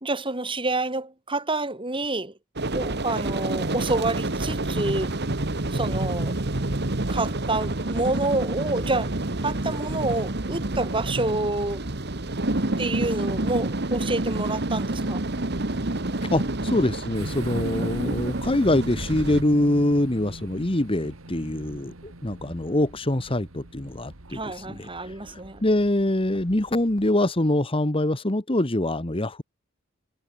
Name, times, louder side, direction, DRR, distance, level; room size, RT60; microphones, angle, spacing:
voice 1, 0.0-2.3 2.7-5.1 5.7-6.3 7.1-9.1 9.4-11.9 12.8-15.2 24.3-25.6, right 2 dB, 25° right, 4.2 m, -28 dB
sound 1, 2.6-19.4, right 2 dB, 55° right, 1.7 m, -28 dB
voice 2, 16.3-29.4, left 1 dB, 25° left, 1.5 m, -24 dB
sound 2, 17.1-27.1, right 1 dB, 90° right, 2.6 m, -43 dB
head